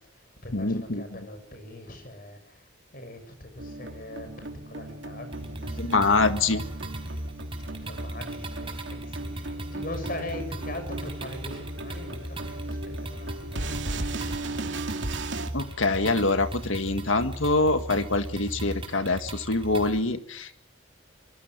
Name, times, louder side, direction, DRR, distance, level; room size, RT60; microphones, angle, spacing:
voice 1, 0.0-6.1 7.8-14.0, left 1 dB, 45° left, 8 dB, 6.5 m, -41 dB
voice 2, 0.5-1.1 5.8-6.6 15.5-20.5, left 3 dB, 85° left, 8 dB, 2.0 m, -25 dB
sound 1, 3.6-15.5, right 2 dB, 65° right, 2.7 m, -37 dB
sound 2, 5.3-20.0, right 1 dB, 25° right, 4.3 m, -38 dB
25.0 x 23.5 x 6.2 m, 0.65 s
head